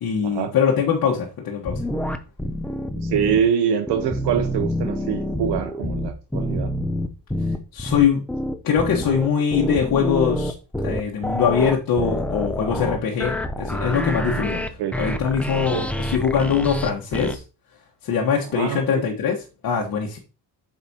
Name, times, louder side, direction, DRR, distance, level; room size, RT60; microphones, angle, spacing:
voice 1, 0.0-1.8 7.7-8.2 8.6-10.5 10.8-14.6 15.0-17.4 18.0-19.4 19.6-20.2, left 7 dB, 55° left, 1.3 m, -22 dB
sound 1, 1.7-3.4 3.9-17.4, equal, 5° left, 0.4 m, -27 dB
voice 2, 3.0-6.7 14.5-15.0 15.5-15.9 18.4-19.1, right 8 dB, 75° right, 0.8 m, -25 dB
8.1 x 5.9 x 2.8 m
cardioid pair, 155°, 41 cm